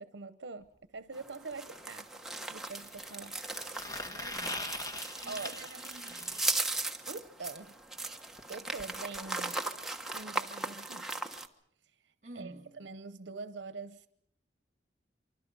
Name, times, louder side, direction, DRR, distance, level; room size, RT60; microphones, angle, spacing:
voice 1, 0.0-2.1 2.5-3.4 5.3-5.7 7.1-7.7 8.5-9.6 10.1-11.1 12.0-14.1, right 4 dB, 85° right, 0.8 m, -44 dB
sound 1, 0.6-0.7 2.6-6.5 8.4-8.5 8.8-8.9 9.1-9.3 10.2-10.3, left 2 dB, 20° left, 1.8 m, -42 dB
sound 2, 1.1-11.5, right 2 dB, ahead, 1.2 m, -38 dB
voice 2, 4.1-4.9 5.2-6.4 12.2-12.7, right 2 dB, 45° right, 2.0 m, -50 dB
25.5 x 24.5 x 5.4 m
head